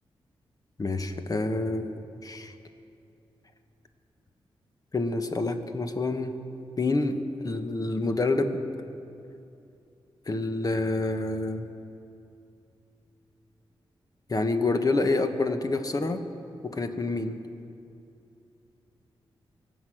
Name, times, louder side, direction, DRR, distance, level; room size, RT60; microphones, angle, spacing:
voice 1, 0.8-2.5 4.9-6.4 6.8-7.2 7.4-8.6 10.3-11.7 14.3-16.2 16.6-17.4, left 2 dB, 40° left, 7 dB, 1.3 m, -27 dB
23.5 x 8.3 x 6.3 m, 2.6 s
cardioid pair, 60°, 10 cm